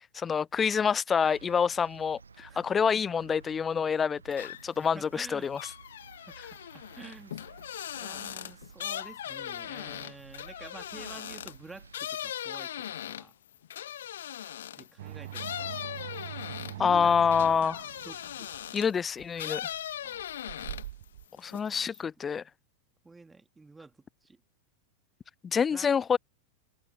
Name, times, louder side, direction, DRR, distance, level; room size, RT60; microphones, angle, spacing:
voice 1, 0.1-5.6 16.8-17.9 18.7-19.7 21.4-22.4 25.4-26.2, left 6 dB, 20° left, 0.5 m, -27 dB
sound 1, 1.3-12.1, right 5 dB, 75° right, 1.1 m, -54 dB
sound 2, 4.3-4.8 5.2-14.9 15.3-19.0 19.3-21.0 21.4-22.0, left 10 dB, 60° left, 1.5 m, -39 dB
voice 2, 4.9-5.5 6.3-7.4 8.0-13.3 14.7-15.8 16.8-17.5 18.0-18.5 20.0-20.3 21.3-22.0 23.0-24.4 25.7-25.9, right 3 dB, 10° right, 2.8 m, -49 dB
sound 3, 15.0-21.2, right 13 dB, 60° right, 1.5 m, -43 dB
figure-of-eight pair, 90°, 0 cm